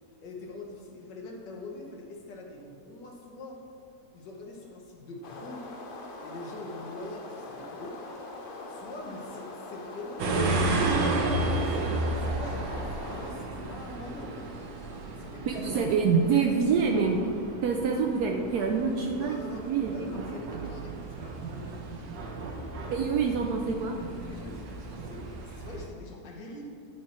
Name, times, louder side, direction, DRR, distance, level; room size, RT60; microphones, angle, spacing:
voice 1, 0.2-3.6 4.1-5.7 6.2-8.0 8.7-14.4 15.1-15.9 16.3-16.6 19.1-21.8 24.1-26.6, left 2 dB, 85° left, -1 dB, 1.8 m, -44 dB
sound 1, 5.2-13.3, left 2 dB, 60° left, 0.5 m, -42 dB
sound 2, 10.2-25.8, right 2 dB, 90° right, 1.5 m, -33 dB
voice 2, 15.5-17.2 17.6-20.1 22.9-24.0, right 5 dB, 70° right, 2 dB, 1.0 m, -26 dB
9.5 x 4.8 x 4.3 m, 2.5 s
omnidirectional pair, 1.8 m